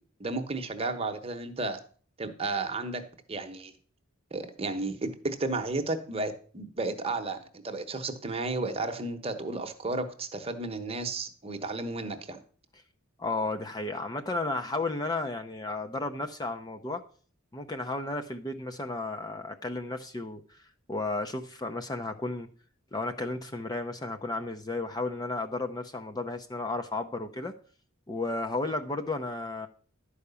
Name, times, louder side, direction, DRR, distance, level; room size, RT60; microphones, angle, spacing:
voice 1, 0.2-1.8 2.2-3.0 3.3-3.7 4.3-12.4, right 3 dB, 30° right, 7 dB, 1.0 m, -33 dB
voice 2, 13.2-17.0 17.5-20.6 20.9-22.5 22.9-27.5 28.1-29.7, left 2 dB, 20° left, 5 dB, 0.6 m, -33 dB
11.5 x 4.9 x 6.8 m, 0.43 s
head